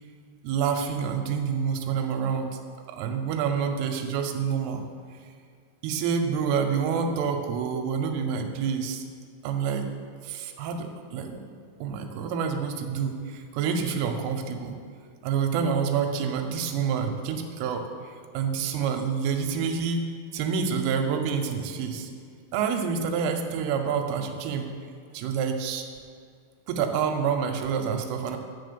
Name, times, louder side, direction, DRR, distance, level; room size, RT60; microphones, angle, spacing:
voice 1, 0.4-2.6 2.9-4.8 5.8-9.0 9.4-9.9 10.2-11.4 11.8-14.8 15.2-17.9 18.3-20.0 20.3-22.1 22.5-24.7 25.1-25.8 26.7-28.4, right 6 dB, 80° right, 4 dB, 2.3 m, -27 dB
9.3 x 3.9 x 6.8 m, 2.2 s
omnidirectional pair, 5.2 m